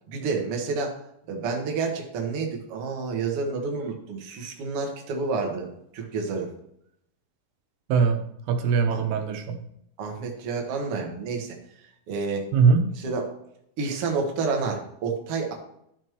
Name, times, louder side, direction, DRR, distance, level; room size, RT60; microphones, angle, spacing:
voice 1, 0.1-0.9 1.3-5.7 5.9-6.5 8.9-9.0 10.0-11.6 12.1-12.5 13.0-13.2 13.8-15.5, right 4 dB, 55° right, 1 dB, 1.7 m, -29 dB
voice 2, 7.9-9.6 12.5-12.9, right 5 dB, 85° right, 5 dB, 2.9 m, -21 dB
12.5 x 4.4 x 4.7 m, 0.74 s
omnidirectional pair, 4.5 m